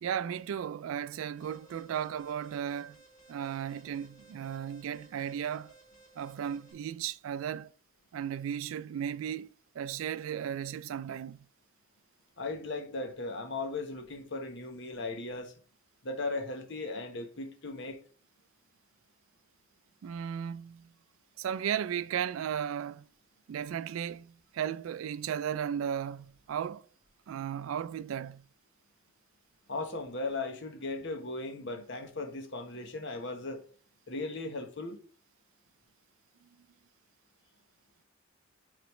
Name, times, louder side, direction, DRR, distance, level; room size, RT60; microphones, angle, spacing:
voice 1, 0.0-3.0 3.3-5.7 6.2-7.7 8.1-11.5 20.0-20.9 21.4-23.1 23.5-26.9 27.3-28.5, right 9 dB, 75° right, 0.3 m, -35 dB
Alarm, 1.4-6.7, right 2 dB, 35° left, 2.3 m, -59 dB
voice 2, 12.4-15.5 16.0-18.0 29.7-33.6 34.1-35.0, left 3 dB, 60° left, 1.1 m, -37 dB
8.0 x 3.9 x 3.1 m
head